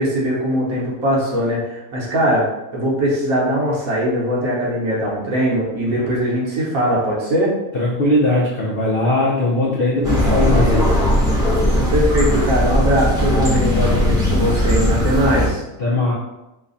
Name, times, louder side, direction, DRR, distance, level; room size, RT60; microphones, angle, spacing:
voice 1, 0.0-7.5 11.7-15.6, equal, 60° right, -4 dB, 1.3 m, -20 dB
voice 2, 7.7-10.9 15.8-16.1, left 1 dB, 65° left, -5 dB, 0.5 m, -19 dB
sound 1, 10.0-15.5, equal, 5° right, 0.4 m, -18 dB
3.1 x 2.2 x 3.8 m, 0.95 s
omnidirectional pair, 1.7 m